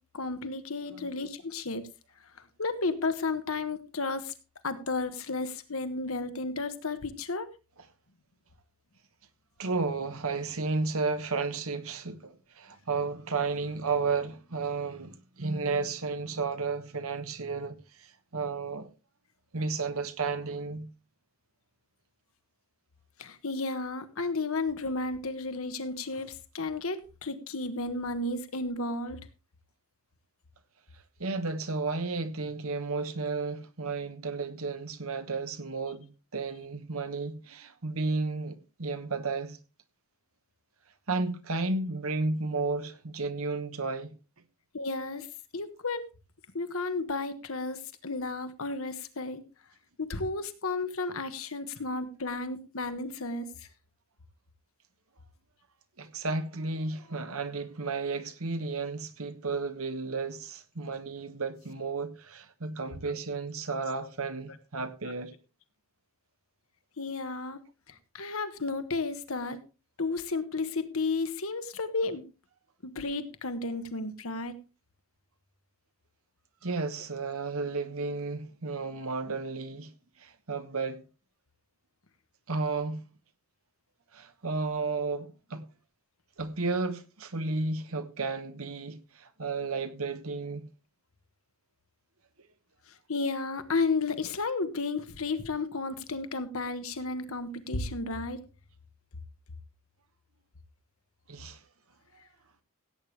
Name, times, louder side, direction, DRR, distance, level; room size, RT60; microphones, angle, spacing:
voice 1, 0.1-1.8 2.6-4.3 4.6-7.5 23.2-29.2 44.7-45.3 45.5-46.0 46.5-49.4 50.0-53.7 64.0-64.1 67.0-67.6 67.9-69.6 70.0-72.2 72.8-74.6 93.1-98.4, left 3 dB, 70° left, 1.3 m, -33 dB
voice 2, 9.6-18.9 19.5-20.9 31.2-39.6 41.1-44.1 56.0-65.3 76.6-79.9 80.2-81.0 82.5-83.1 84.1-85.7 86.4-90.6 101.3-101.6, right 3 dB, 75° right, 1.3 m, -33 dB
16.5 x 8.7 x 3.3 m
head